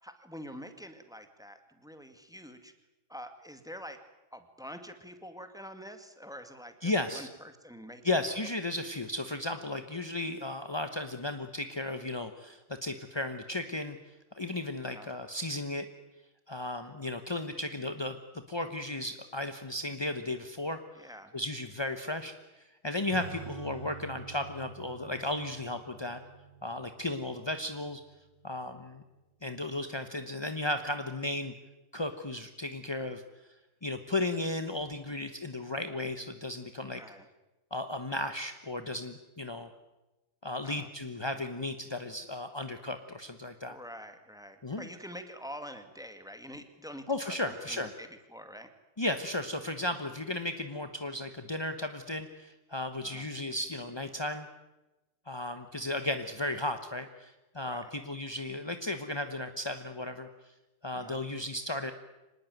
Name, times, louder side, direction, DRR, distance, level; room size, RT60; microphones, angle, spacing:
voice 1, 0.0-2.7 3.1-4.0 4.3-8.2 14.8-15.1 20.9-21.4 36.9-37.3 40.6-40.9 43.7-48.7 53.0-53.3 57.6-57.9 60.9-61.2, equal, ahead, 8 dB, 1.8 m, -46 dB
voice 2, 6.8-7.3 8.0-14.0 14.4-15.9 16.5-18.2 18.5-20.8 21.3-22.3 22.8-26.2 26.6-28.0 28.4-29.0 29.4-31.5 31.9-33.2 33.8-37.0 37.7-39.7 40.4-43.8 44.6-44.9 47.1-47.9 49.0-54.5 55.3-60.3 60.8-61.9, left 2 dB, 25° left, 8 dB, 0.6 m, -35 dB
Acoustic guitar / Strum, 23.1-29.0, right 4 dB, 40° right, 5.2 m, -47 dB
25.5 x 19.5 x 9.3 m, 1.0 s
omnidirectional pair, 2.3 m